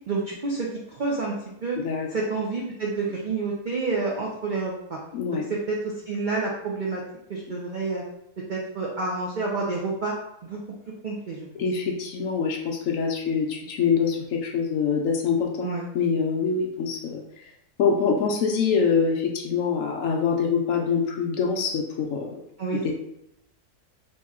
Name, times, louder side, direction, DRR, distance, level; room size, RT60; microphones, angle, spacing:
voice 1, 0.0-1.3 1.6-1.8 2.1-5.0 5.5-7.0 7.3-8.0 8.5-10.1 10.4-10.6 11.0-11.5 15.6-15.9 22.6-22.9, right 3 dB, 80° right, -3 dB, 0.4 m, -29 dB
voice 2, 5.1-5.4 11.6-17.5 17.8-22.4 22.8-22.9, left 6 dB, 70° left, 2 dB, 0.9 m, -25 dB
3.0 x 2.7 x 3.5 m, 0.79 s
omnidirectional pair, 1.6 m